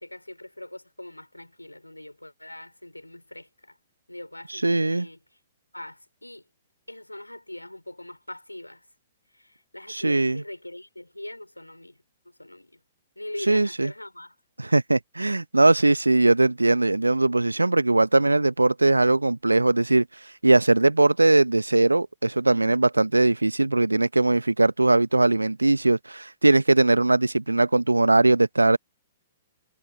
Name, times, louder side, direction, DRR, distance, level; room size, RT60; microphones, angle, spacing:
voice 1, 0.0-3.8 4.1-5.2 5.7-6.4 6.9-8.9 9.3-12.8 13.2-14.4, left 1 dB, 90° left, 5.2 m, -41 dB
voice 2, 4.6-5.1 9.9-10.4 13.5-13.9 14.6-20.0 20.4-28.8, right 2 dB, 85° right, 0.9 m, -20 dB
figure-of-eight pair, 115°, 0 cm